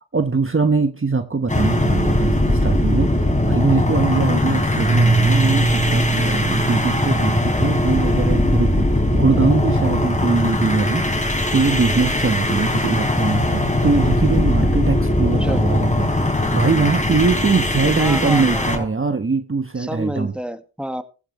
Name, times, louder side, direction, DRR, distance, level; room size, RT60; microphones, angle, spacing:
voice 1, 0.1-3.1 3.4-20.3, right 4 dB, 25° right, 1.3 m, -21 dB
sound 1, 1.5-18.8, left 1 dB, 15° left, 3.7 m, -20 dB
Keyboard (musical), 4.8-8.0, right 3 dB, 55° right, 4.8 m, -22 dB
voice 2, 18.0-18.9 19.8-21.0, right 1 dB, ahead, 1.8 m, -29 dB
15.5 x 13.5 x 3.2 m
supercardioid pair, 40°, 48 cm